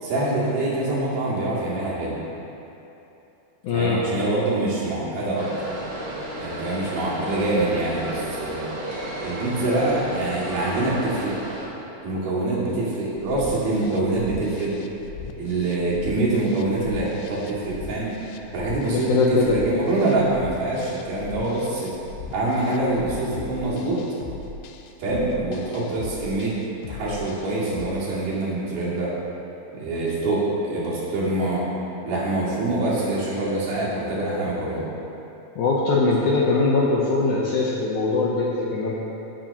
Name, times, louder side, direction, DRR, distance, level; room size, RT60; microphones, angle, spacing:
voice 1, 0.0-2.2 3.7-5.5 6.4-8.7 9.2-11.4 12.0-14.7 15.4-18.1 18.5-21.9 22.3-24.0 25.0-26.5 26.9-29.1 29.7-31.6 32.0-34.9, right 2 dB, 70° right, -8 dB, 4.1 m, -25 dB
voice 2, 3.6-4.0 18.9-19.6 35.6-39.0, left 3 dB, 70° left, -4 dB, 1.9 m, -21 dB
sound 1, 5.4-11.7, right 1 dB, 55° right, 1.5 m, -33 dB
sound 2, 13.2-27.9, left 6 dB, 85° left, 2.7 m, -39 dB
17.5 x 9.0 x 3.0 m, 3.0 s
omnidirectional pair, 4.5 m